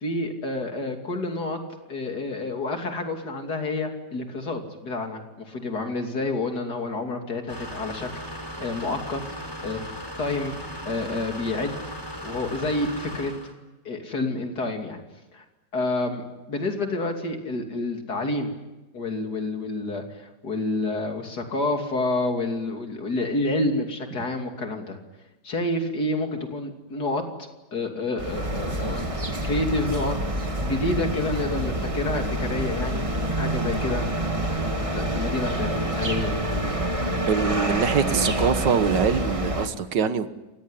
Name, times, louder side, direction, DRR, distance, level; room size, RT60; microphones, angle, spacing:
voice 1, 0.0-1.6 1.9-8.1 8.6-9.8 10.2-11.8 12.2-13.3 13.8-15.0 15.3-15.4 15.7-18.5 18.9-25.0 25.4-27.2 27.7-29.0 29.4-30.2 30.6-33.1 33.4-34.1 34.5-36.4, left 2 dB, 65° left, 4 dB, 3.4 m, -29 dB
sound 1, 7.5-13.5, equal, 15° left, 4.5 m, -37 dB
sound 2, 28.2-39.7, right 1 dB, 20° right, 1.9 m, -27 dB
voice 2, 37.1-40.3, right 6 dB, 90° right, 11 dB, 2.0 m, -23 dB
29.0 x 17.0 x 9.9 m, 1.1 s
omnidirectional pair, 1.8 m